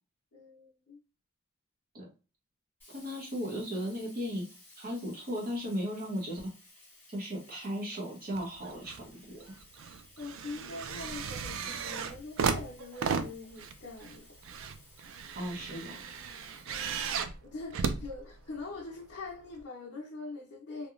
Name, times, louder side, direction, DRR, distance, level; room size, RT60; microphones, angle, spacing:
voice 1, 0.3-1.0 10.2-14.3 16.6-17.1 17.4-20.9, left 3 dB, 55° left, 0.6 m, -43 dB
Sink (filling or washing), 2.8-17.5, left 2 dB, 10° left, 1.0 m, -58 dB
voice 2, 2.9-4.5 4.8-6.5 7.1-9.5 15.3-16.1, equal, 45° right, 0.8 m, -36 dB
sound 1, 8.3-9.1 9.4-18.8 19.6-19.7, right 6 dB, 70° right, 0.3 m, -36 dB
2.9 x 2.1 x 2.4 m
head